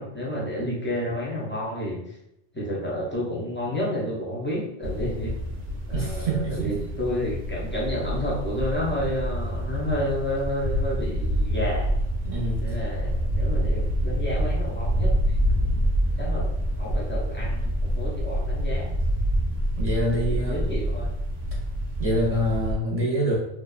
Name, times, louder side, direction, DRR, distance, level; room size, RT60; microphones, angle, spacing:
voice 1, 0.0-2.1 2.5-5.3 5.9-11.9 12.6-15.4 16.2-16.5 16.8-18.9 20.3-21.1, left 1 dB, 20° left, -6 dB, 0.3 m, -30 dB
sound 1, 4.8-22.7, equal, 85° right, 0.8 m, -27 dB
voice 2, 5.9-6.7 12.2-12.8 19.8-20.6 22.0-23.4, right 1 dB, 50° right, -4 dB, 0.4 m, -26 dB
2.8 x 2.1 x 2.3 m, 0.81 s
omnidirectional pair, 1.1 m